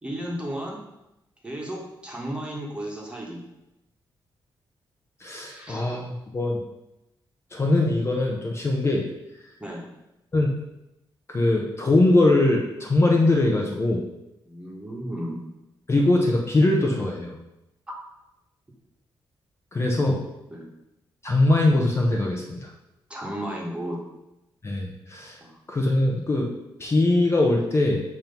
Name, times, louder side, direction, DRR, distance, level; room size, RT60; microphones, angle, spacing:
voice 1, 0.0-0.8 1.4-3.4 5.5-5.8 9.6-9.8 14.4-15.4 20.5-20.7 23.1-24.0 25.4-25.6, right 1 dB, 10° right, -2 dB, 1.4 m, -34 dB
voice 2, 5.2-6.6 7.5-9.0 10.3-10.5 11.3-14.0 15.9-17.3 19.7-20.2 21.2-22.7 24.6-25.4 25.7-26.5 26.8-28.0, left 2 dB, 30° left, 0 dB, 0.9 m, -21 dB
7.5 x 3.0 x 5.3 m, 0.92 s
cardioid pair, 130°, 9 cm